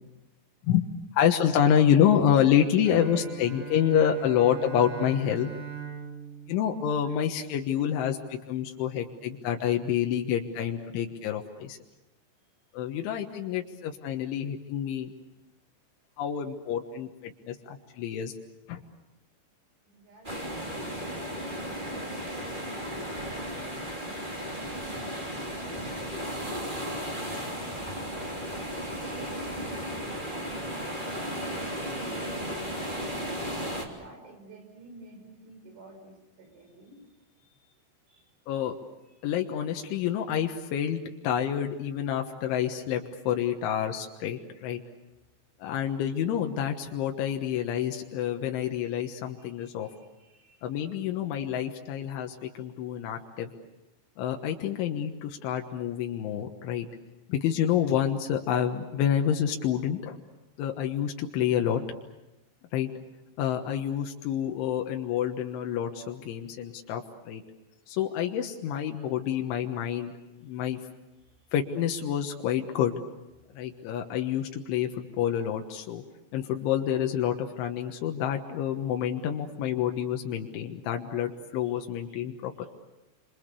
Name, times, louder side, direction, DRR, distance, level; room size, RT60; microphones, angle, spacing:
voice 1, 1.1-5.5 6.5-11.8 12.7-15.1 16.2-18.3 18.7-18.8 38.5-38.7 39.2-41.0 41.2-44.8 45.6-49.9 50.6-53.5 54.2-56.9 57.3-60.2 60.6-61.8 62.7-62.9 63.4-67.4 67.9-70.1 70.4-70.8 71.5-73.0 73.6-76.0 76.3-82.7, left 9 dB, 85° left, 3 dB, 3.7 m, -28 dB
Bowed string instrument, 2.8-7.7, right 7 dB, 65° right, 7.3 m, -41 dB
voice 2, 19.9-23.8 24.2-26.4 26.8-28.9 29.4-30.1 30.7-33.2 33.9-38.3 39.0-39.3 45.6-45.8 49.4-50.7 71.4-71.6 81.6-81.8 82.1-82.2 82.6-82.7, right 2 dB, 85° right, 3 dB, 8.3 m, -53 dB
sound 1, 20.2-33.8, equal, 15° right, 2.5 m, -35 dB
29.0 x 26.0 x 6.8 m, 0.98 s
omnidirectional pair, 5.3 m